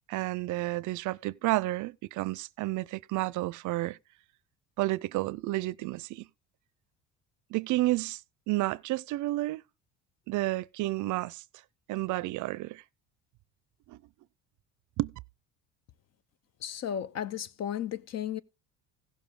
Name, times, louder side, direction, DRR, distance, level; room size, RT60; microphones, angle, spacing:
voice 1, 0.1-4.0 4.8-6.3 7.5-8.2 8.5-9.6 10.3-11.4 11.9-12.8 13.9-14.0 15.0-15.1, right 18 dB, 60° right, 0.5 m, -31 dB
voice 2, 16.6-18.4, left 9 dB, 50° left, 1.0 m, -34 dB
16.0 x 6.9 x 3.7 m
supercardioid pair, 90°, 33 cm